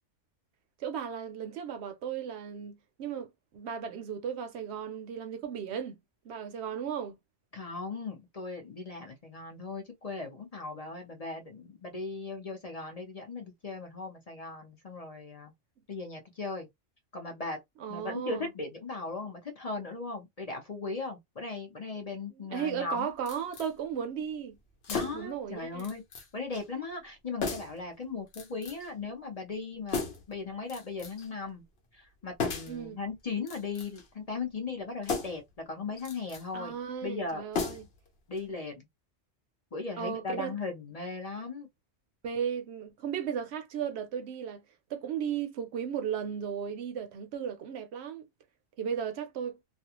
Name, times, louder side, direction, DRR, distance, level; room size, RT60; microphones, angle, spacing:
voice 1, 0.8-6.0 6.2-7.1 17.8-18.5 22.5-24.6 25.1-25.9 32.7-33.0 36.5-37.9 40.0-40.5 42.2-44.6 44.9-48.3 48.8-49.6, right 8 dB, 70° right, 0.8 m, -35 dB
voice 2, 7.5-15.5 15.9-16.7 17.1-17.6 17.9-23.1 24.9-26.0 26.3-31.6 31.9-36.8 37.0-37.4 38.3-38.8 39.7-41.7, left 4 dB, 40° left, 0.6 m, -38 dB
sound 1, 23.3-23.7 24.8-25.4 25.8-26.3 26.5-26.7 27.4-27.8 28.3-28.9 29.9-30.3 30.7-31.3 32.4-32.8 33.4-34.1 35.0-35.5 36.0-36.4 37.5-38.1 38.4-38.5, left 5 dB, 60° left, 0.9 m, -35 dB
2.4 x 2.3 x 2.8 m
omnidirectional pair, 1.2 m